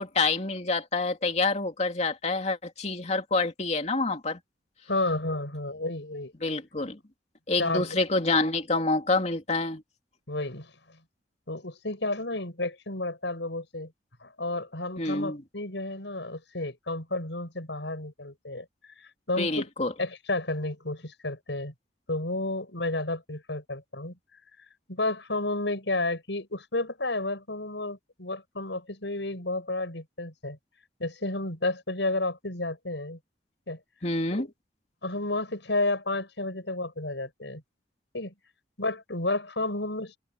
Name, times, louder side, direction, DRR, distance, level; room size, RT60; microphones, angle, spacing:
voice 1, 0.0-4.4 6.4-7.0 7.5-9.8 15.0-15.4 19.4-19.9 34.0-34.5, left 3 dB, 40° left, 2.8 m, -27 dB
voice 2, 4.9-6.3 7.6-8.0 10.3-11.0 11.5-13.9 14.2-18.7 19.0-19.7 20.0-21.7 22.1-24.2 24.9-30.6 31.0-33.2 33.7-33.8 34.3-34.5 35.0-37.6 38.1-38.3 38.8-40.2, left 2 dB, 85° left, 6.2 m, -31 dB
head